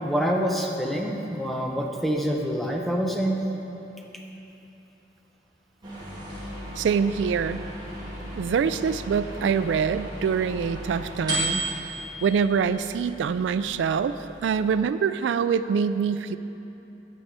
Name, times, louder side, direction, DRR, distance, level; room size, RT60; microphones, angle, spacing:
voice 1, 0.0-3.4, equal, ahead, 0 dB, 0.8 m, -26 dB
sound 1, 5.8-14.7, right 1 dB, 25° right, 2.1 m, -35 dB
voice 2, 6.8-7.6 8.4-11.6 12.2-14.1 14.4-16.4, right 6 dB, 85° right, 12 dB, 0.3 m, -24 dB
9.3 x 5.4 x 7.8 m, 3.0 s
head